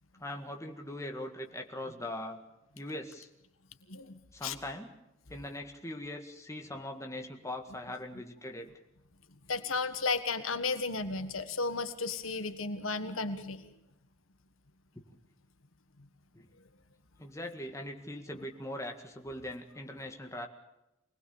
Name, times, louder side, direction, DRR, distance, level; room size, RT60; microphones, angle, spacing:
voice 1, 0.2-2.4 2.7-3.3 4.3-4.9 5.3-8.7 14.9-15.0 16.3-16.5 17.2-20.5, left 1 dB, 15° left, 3 dB, 1.9 m, -41 dB
voice 2, 3.9-4.5 9.5-13.7, left 4 dB, 80° left, 9 dB, 1.6 m, -34 dB
24.5 x 19.5 x 7.3 m, 0.90 s
head